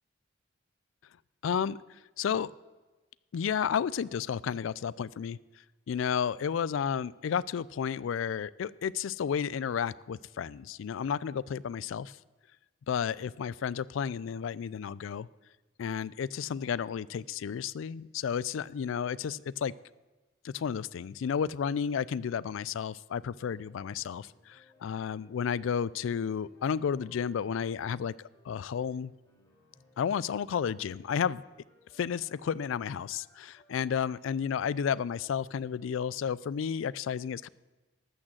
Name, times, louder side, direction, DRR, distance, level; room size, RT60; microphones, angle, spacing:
voice 1, 1.4-1.8 2.2-2.5 3.3-5.4 5.9-12.2 12.9-15.3 15.8-19.7 20.4-28.1 28.5-29.1 30.0-31.4 31.9-37.5, left 7 dB, 75° left, 21 dB, 0.3 m, -32 dB
sound 1, 23.5-30.3 30.5-36.2, left 1 dB, 20° left, 3.8 m, -65 dB
12.5 x 6.3 x 7.5 m, 1.2 s
head